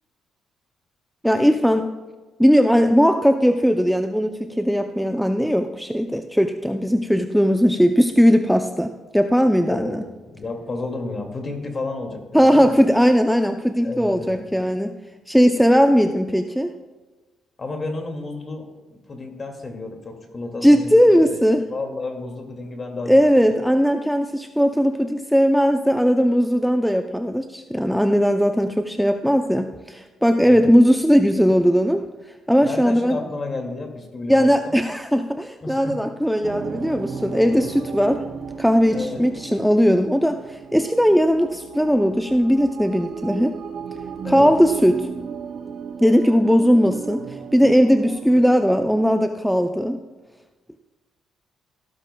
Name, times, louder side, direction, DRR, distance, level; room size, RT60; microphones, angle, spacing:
voice 1, 1.2-1.9 2.4-10.0 12.3-14.9 15.3-16.7 20.6-21.6 23.1-32.0 32.5-33.2 34.3-38.2 38.6-43.6 44.2-45.1 46.0-47.2 47.5-50.0, equal, ahead, 6 dB, 0.5 m, -18 dB
voice 2, 9.7-12.8 13.8-14.5 17.6-21.0 21.2-21.4 21.7-23.5 30.4-30.6 32.6-34.7 35.6-36.0 37.5-37.7 38.9-39.2 44.2-44.5, left 3 dB, 40° left, 3 dB, 2.2 m, -32 dB
sound 1, 36.4-49.0, right 6 dB, 65° right, 0.8 m, -35 dB
15.5 x 12.5 x 2.3 m, 1.2 s
cardioid pair, 90°, 0 cm